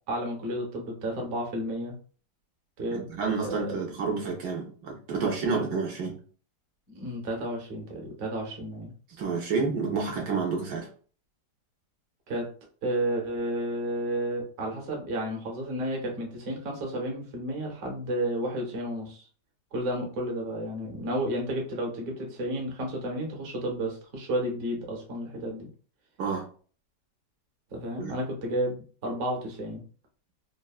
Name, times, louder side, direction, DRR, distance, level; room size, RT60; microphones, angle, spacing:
voice 1, 0.1-2.0 2.8-3.1 3.4-3.8 6.9-8.9 12.3-12.5 12.8-19.2 19.7-25.7 27.7-29.8, right 1 dB, 50° right, 0 dB, 1.0 m, -32 dB
voice 2, 2.9-6.2 9.2-10.9 26.2-26.4 28.0-28.1, right 4 dB, 75° right, 0 dB, 1.1 m, -29 dB
3.4 x 2.1 x 2.3 m, 0.41 s
omnidirectional pair, 1.9 m